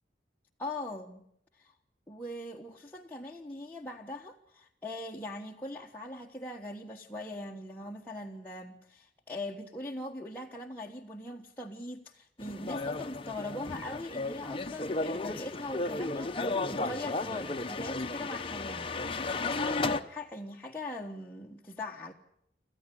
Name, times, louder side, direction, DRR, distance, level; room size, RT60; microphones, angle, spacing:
voice 1, 0.6-1.2 1.6-1.7 2.1-18.9 19.4-22.1, left 2 dB, 10° left, -2 dB, 1.3 m, -41 dB
sound 1, 12.4-20.0, left 3 dB, 30° left, 0.9 m, -34 dB
26.5 x 14.5 x 10.0 m, 0.74 s
head